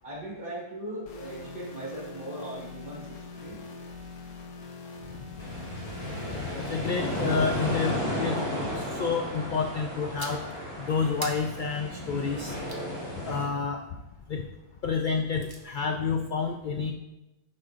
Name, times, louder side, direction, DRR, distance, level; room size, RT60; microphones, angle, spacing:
voice 1, 0.0-3.6, right 1 dB, 45° right, -6 dB, 3.1 m, -39 dB
sound 1, 1.1-7.9, left 4 dB, 90° left, 1.2 m, -43 dB
sound 2, 5.4-13.5, equal, 35° left, 2.0 m, -33 dB
voice 2, 6.6-8.4 8.7-10.4 10.8-12.5 13.3-13.8 14.3-14.5 14.8-16.9, left 5 dB, 60° left, 5 dB, 0.5 m, -29 dB
sound 3, 10.2-10.6 11.2-12.9 15.0-15.6, right 2 dB, 25° right, 0.7 m, -42 dB
9.6 x 6.5 x 2.5 m, 0.97 s
omnidirectional pair, 1.3 m